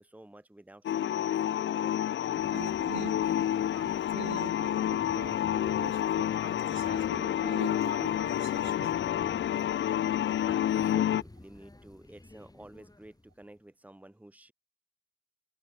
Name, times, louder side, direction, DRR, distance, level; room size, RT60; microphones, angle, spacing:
voice 1, 0.0-2.1 3.2-3.4 10.4-14.5, right 1 dB, 5° right, 1.9 m, -52 dB
sound 1, 0.8-11.2, left 11 dB, 40° left, 0.4 m, -29 dB
sound 2, 2.3-13.6, left 2 dB, 15° left, 8.0 m, -50 dB
voice 2, 2.5-3.5 3.7-8.9 10.0-10.1, right 11 dB, 70° right, 3.6 m, -45 dB
cardioid pair, 80°, 29 cm